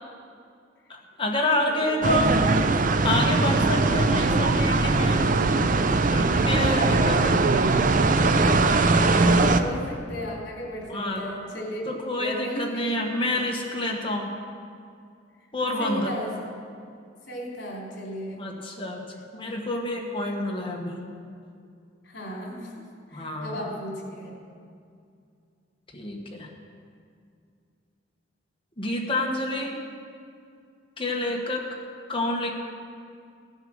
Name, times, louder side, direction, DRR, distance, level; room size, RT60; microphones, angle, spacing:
voice 1, 0.9-2.4 3.0-5.3 6.1-7.3 10.9-11.2 11.8-14.3 15.5-16.2 18.4-19.1 19.3-21.1 23.1-23.8 25.9-26.5 28.8-29.8 31.0-31.7 32.1-32.5, left 1 dB, 30° left, 0 dB, 1.6 m, -28 dB
voice 2, 1.6-1.9 6.7-7.3 8.2-11.9 12.2-12.9 15.8-16.3 17.3-18.4 22.1-22.8 23.1-24.3, equal, 65° left, -2 dB, 3.3 m, -34 dB
sound 1, 2.0-9.6, right 3 dB, 45° right, 0.6 m, -21 dB
16.0 x 8.0 x 6.5 m, 2.4 s
head